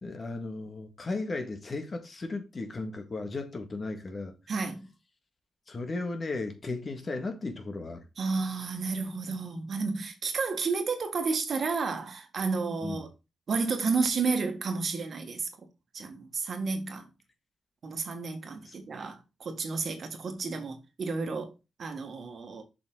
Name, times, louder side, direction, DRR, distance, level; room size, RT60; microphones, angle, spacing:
voice 1, 0.0-4.3 5.7-8.1 12.8-13.0 18.6-18.8, left 3 dB, 40° left, 1.9 m, -35 dB
voice 2, 4.5-4.9 8.2-13.1 13.5-15.5 15.9-17.1 17.8-21.5 21.8-22.6, right 4 dB, 60° right, 1.7 m, -31 dB
6.9 x 5.6 x 3.9 m
cardioid pair, 75°, 0 cm